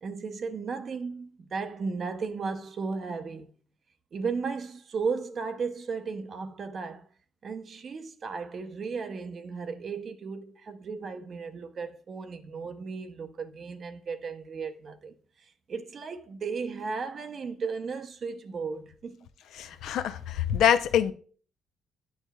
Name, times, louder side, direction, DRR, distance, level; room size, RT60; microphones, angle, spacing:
voice 1, 0.0-3.5 4.1-7.1 7.4-19.3, right 5 dB, 50° right, 0.6 m, -35 dB
voice 2, 19.6-21.1, left 9 dB, 75° left, 0.5 m, -25 dB
9.0 x 4.7 x 2.2 m
cardioid pair, 80°, 0 cm